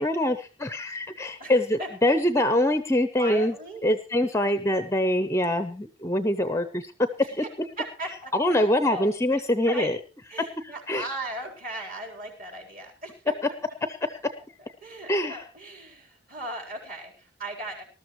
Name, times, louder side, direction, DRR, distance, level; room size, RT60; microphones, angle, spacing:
voice 1, 0.0-3.5 3.8-7.1 7.4-7.5 8.3-10.0 10.9-11.0 13.9-14.2 15.1-15.4, left 1 dB, 15° left, 10 dB, 0.6 m, -24 dB
voice 2, 1.8-2.2 3.2-3.8 4.4-4.5 7.2-7.5 7.8-9.9 10.3-13.3 14.4-17.8, right 1 dB, 40° right, 0 dB, 4.0 m, -38 dB
19.5 x 13.0 x 3.1 m, 0.32 s
head